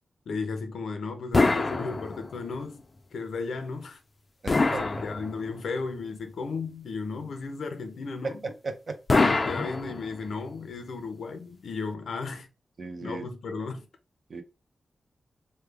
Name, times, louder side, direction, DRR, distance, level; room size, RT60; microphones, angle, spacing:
voice 1, 0.3-2.8 3.1-4.0 4.6-8.4 9.2-12.5 13.0-13.9, left 4 dB, 85° left, 0.6 m, -35 dB
sound 1, 1.3-2.5 4.5-5.7 9.1-10.4, left 3 dB, 35° left, 0.4 m, -25 dB
voice 2, 4.4-4.8 8.2-9.0 12.8-13.3 14.3-14.4, right 3 dB, 50° right, 0.6 m, -35 dB
3.2 x 2.2 x 3.3 m
wide cardioid pair, 130°, 0 cm